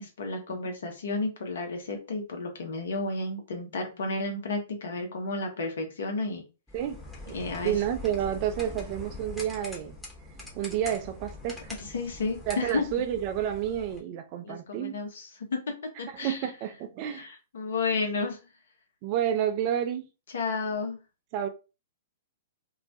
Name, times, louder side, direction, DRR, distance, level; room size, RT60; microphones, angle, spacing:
voice 1, 0.0-6.4 7.3-7.7 11.8-12.8 14.4-15.6 16.0-16.4 17.1-18.4 20.3-21.0, left 3 dB, 65° left, 0.8 m, -32 dB
sound 1, 6.7-14.0, left 1 dB, 5° left, 0.8 m, -43 dB
voice 2, 7.6-10.0 10.5-11.7 12.5-15.0 16.1-17.3 19.0-20.0 21.3-21.5, right 10 dB, 40° right, 0.4 m, -30 dB
2.3 x 2.1 x 2.6 m
figure-of-eight pair, 110°, 0 cm